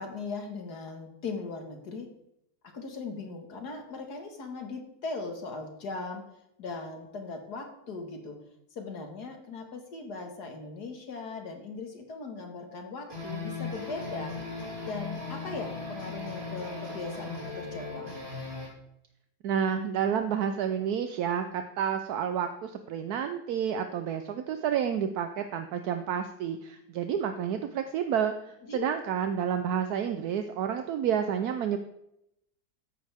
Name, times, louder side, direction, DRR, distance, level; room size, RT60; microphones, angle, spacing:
voice 1, 0.0-2.1 2.7-6.2 6.6-8.4 8.7-14.3 14.9-18.2 28.6-28.8, left 3 dB, 80° left, 4 dB, 2.3 m, -39 dB
sound 1, 13.1-18.7, left 3 dB, 40° right, 3.3 m, -38 dB
voice 2, 19.4-31.8, right 8 dB, 75° right, 7 dB, 1.2 m, -30 dB
13.5 x 9.7 x 3.5 m, 0.79 s
omnidirectional pair, 1.7 m